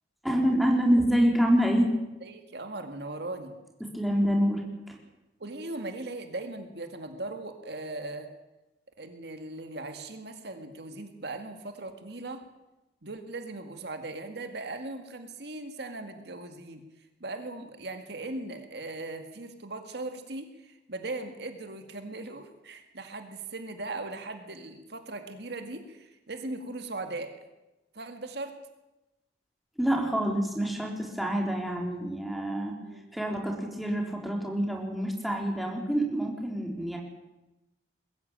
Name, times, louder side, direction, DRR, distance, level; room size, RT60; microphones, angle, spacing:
voice 1, 0.2-1.9 3.8-5.0 29.8-32.7 33.1-37.0, equal, ahead, 0 dB, 4.0 m, -27 dB
voice 2, 2.2-3.6 5.4-8.3 9.0-12.4 13.0-16.8 17.2-27.3 27.9-28.6 32.8-33.0, right 2 dB, 65° right, 6 dB, 2.1 m, -39 dB
21.5 x 14.5 x 8.9 m, 1.0 s
head